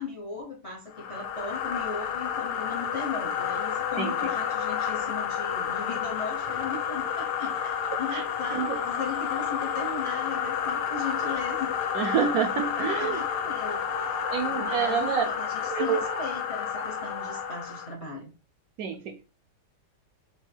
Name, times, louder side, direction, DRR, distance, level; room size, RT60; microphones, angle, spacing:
voice 1, 0.0-7.7 8.0-11.7 12.8-14.2 14.5-18.3, left 4 dB, 40° left, 0.5 m, -37 dB
sound 1, 0.9-17.9, left 8 dB, 75° left, 1.2 m, -30 dB
voice 2, 11.9-13.2 14.3-15.3 15.7-16.0 18.8-19.2, right 7 dB, 70° right, 0.9 m, -28 dB
sound 2, 13.7-15.5 15.9-16.3 16.7-17.5, right 5 dB, 90° right, 1.3 m, -40 dB
5.4 x 2.7 x 3.3 m
omnidirectional pair, 1.9 m